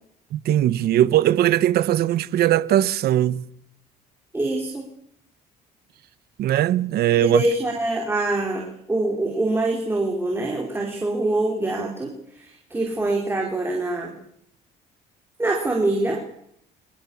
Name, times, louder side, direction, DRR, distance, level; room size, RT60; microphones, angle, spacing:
voice 1, 0.3-3.4 6.4-7.4, right 12 dB, 70° right, 1.4 m, -20 dB
voice 2, 4.3-4.9 7.2-14.2 15.4-16.2, right 2 dB, 15° right, 5.1 m, -24 dB
26.5 x 21.5 x 7.5 m
cardioid pair, 110°, 17 cm